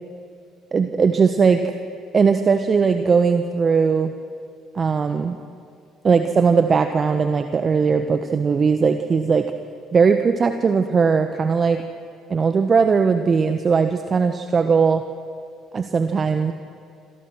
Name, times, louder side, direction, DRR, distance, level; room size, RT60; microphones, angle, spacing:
voice 1, 0.7-1.8 2.1-4.1 4.7-5.4 6.0-9.5 9.9-11.8 12.3-15.0 15.7-16.5, right 5 dB, 35° right, 8 dB, 1.3 m, -19 dB
27.5 x 27.0 x 6.3 m, 2.3 s
figure-of-eight pair, 50°, 0 cm